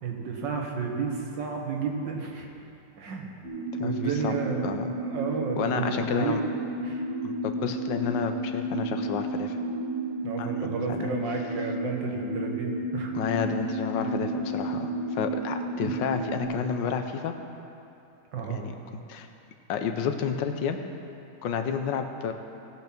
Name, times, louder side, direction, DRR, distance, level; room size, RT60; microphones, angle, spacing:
voice 1, 0.0-2.5 3.0-3.3 3.8-6.4 6.8-7.0 10.2-13.1 18.3-18.6, right 5 dB, 80° right, 1 dB, 2.0 m, -32 dB
sound 1, 3.4-16.4, right 1 dB, 30° right, 2.9 m, -32 dB
voice 2, 3.8-4.3 4.6-4.9 5.6-6.4 7.2-9.6 10.4-11.1 13.1-17.3 18.5-18.7 19.1-19.3 19.7-20.8 21.4-22.3, left 6 dB, 80° left, 6 dB, 1.5 m, -30 dB
17.5 x 5.9 x 6.0 m, 2.7 s
omnidirectional pair, 1.9 m